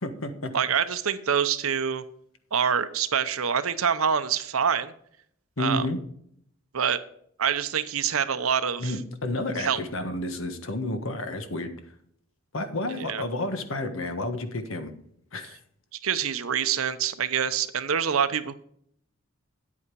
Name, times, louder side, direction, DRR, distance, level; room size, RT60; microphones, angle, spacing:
voice 1, 0.0-0.5 5.6-6.0 8.8-11.7 12.5-14.9 15.3-15.6, left 1 dB, 75° left, 8 dB, 1.4 m, -30 dB
voice 2, 0.5-2.0 2.5-4.9 5.6-5.8 6.7-7.0 7.4-9.0 9.6-9.8 13.0-13.2 16.0-18.5, right 7 dB, 80° right, 12 dB, 0.8 m, -26 dB
9.7 x 8.5 x 4.7 m, 0.68 s
head